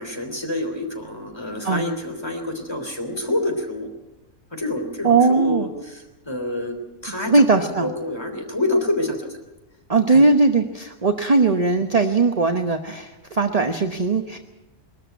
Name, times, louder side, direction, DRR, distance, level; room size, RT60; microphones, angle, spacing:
voice 1, 0.0-3.9 4.5-6.7 7.0-9.4 10.1-10.2, left 1 dB, 20° left, 4 dB, 3.2 m, -27 dB
voice 2, 5.0-5.7 7.3-7.9 9.9-14.4, right 3 dB, 30° right, 6 dB, 0.9 m, -19 dB
21.5 x 13.0 x 9.3 m, 1.1 s
omnidirectional pair, 1.4 m